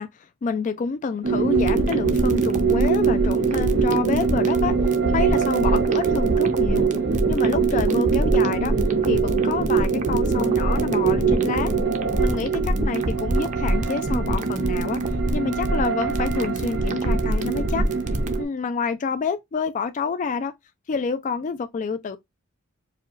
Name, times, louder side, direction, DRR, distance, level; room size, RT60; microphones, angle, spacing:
voice 1, 0.0-4.8 5.1-6.9 7.3-8.7 9.1-11.7 12.2-15.0 15.3-17.9 18.4-20.5 20.9-22.2, left 5 dB, 40° left, 0.3 m, -28 dB
sound 1, 1.2-18.4, right 5 dB, 80° right, 1.6 m, -23 dB
sound 2, 1.5-18.4, right 1 dB, 35° right, 0.6 m, -26 dB
4.7 x 2.3 x 3.1 m
head